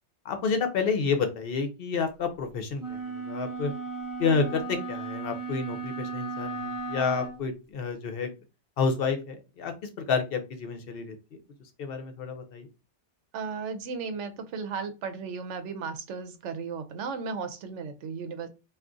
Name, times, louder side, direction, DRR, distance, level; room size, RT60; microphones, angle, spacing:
voice 1, 0.2-3.7 4.2-8.3 8.8-9.7 10.1-11.2 11.8-12.7, left 5 dB, 65° left, 7 dB, 0.7 m, -29 dB
sound 1, 2.8-7.4, right 3 dB, 20° right, 0.6 m, -35 dB
voice 2, 13.3-18.5, right 5 dB, 90° right, 9 dB, 0.9 m, -35 dB
2.3 x 2.3 x 3.8 m, 0.29 s
omnidirectional pair, 1.2 m